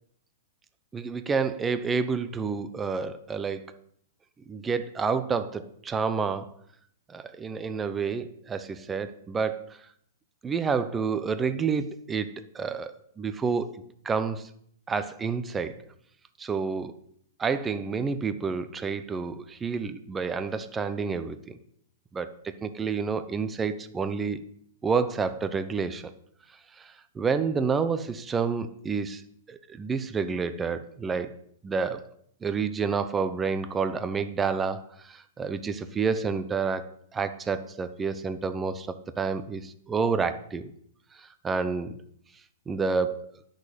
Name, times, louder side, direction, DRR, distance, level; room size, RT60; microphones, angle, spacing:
voice 1, 0.9-3.7 4.5-6.5 7.1-9.8 10.4-14.5 14.9-15.8 16.4-17.0 17.4-21.6 22.1-24.4 24.8-26.1 26.8-29.2 29.5-31.3 31.6-32.1 32.4-40.7 41.1-42.0 42.7-43.3, right 5 dB, 15° right, 11 dB, 0.8 m, -29 dB
11.0 x 6.6 x 8.4 m, 0.67 s
hypercardioid pair, 135°, 0 cm